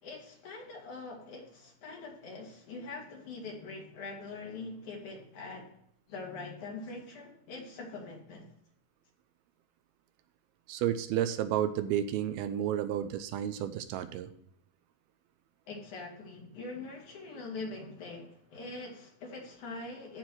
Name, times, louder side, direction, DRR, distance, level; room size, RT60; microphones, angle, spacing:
voice 1, 0.0-5.7 6.1-8.5 15.7-20.2, left 3 dB, 55° left, -1 dB, 3.3 m, -43 dB
voice 2, 10.7-14.3, right 10 dB, 85° right, 10 dB, 2.5 m, -31 dB
13.5 x 4.6 x 4.6 m, 0.70 s
omnidirectional pair, 4.4 m